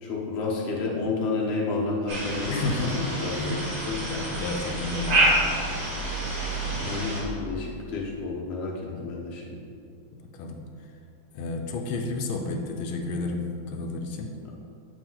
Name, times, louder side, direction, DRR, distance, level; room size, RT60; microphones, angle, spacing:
voice 1, 0.0-4.0 6.8-8.7 9.0-9.6, left 3 dB, 45° left, -2 dB, 0.9 m, -30 dB
sound 1, 2.1-7.2, right 1 dB, 90° right, 2.6 m, -27 dB
voice 2, 2.5-5.2 6.7-6.9 8.9-9.0 10.3-10.6 11.3-14.3, left 2 dB, 85° left, 3 dB, 1.5 m, -31 dB
7.7 x 5.0 x 3.8 m, 2.4 s
omnidirectional pair, 2.2 m